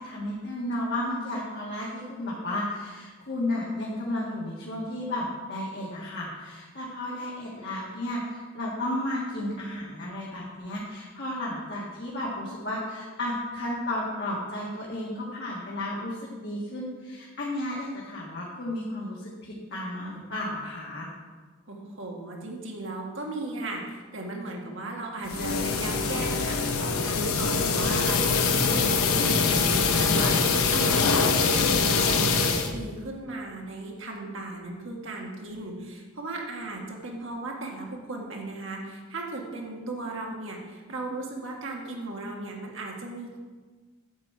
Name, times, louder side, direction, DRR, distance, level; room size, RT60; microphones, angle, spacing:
voice 1, 0.0-21.1, left 1 dB, 55° left, -6 dB, 1.7 m, -33 dB
voice 2, 21.7-43.4, right 2 dB, 60° right, 0 dB, 1.7 m, -36 dB
sound 1, 25.2-32.7, left 4 dB, 90° left, 0.9 m, -23 dB
9.0 x 7.9 x 4.7 m, 1.4 s
head